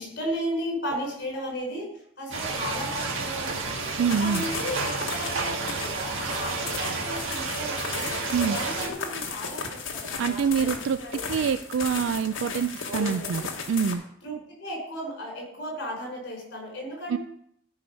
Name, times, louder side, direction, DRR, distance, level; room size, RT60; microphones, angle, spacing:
voice 1, 0.0-1.9 2.2-3.9 4.2-8.1 8.5-10.7 10.9-11.4 12.8-13.5 14.2-17.2, equal, 60° left, -1 dB, 4.7 m, -35 dB
sound 1, 2.3-8.9, right 3 dB, 90° right, 1.5 m, -31 dB
voice 2, 4.0-4.5 8.3-8.6 10.2-14.0 17.1-17.2, right 6 dB, 65° right, 12 dB, 0.3 m, -26 dB
sound 2, 4.1-13.9, left 5 dB, 85° left, 1.3 m, -36 dB
13.0 x 4.7 x 5.3 m, 0.68 s
head